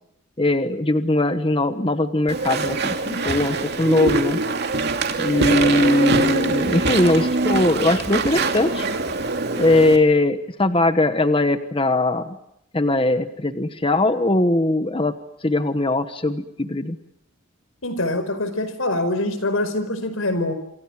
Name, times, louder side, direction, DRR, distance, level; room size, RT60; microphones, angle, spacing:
voice 1, 0.4-4.4 5.2-8.9 9.6-12.4 12.7-15.1 15.4-17.0, left 2 dB, 25° left, 10 dB, 1.1 m, -20 dB
Walk footsteps / Chatter / Squeak, 2.3-10.0, right 3 dB, 50° right, 2.8 m, -23 dB
voice 2, 17.8-20.5, left 2 dB, 80° left, 12 dB, 5.0 m, -24 dB
28.0 x 26.0 x 7.2 m, 0.81 s
head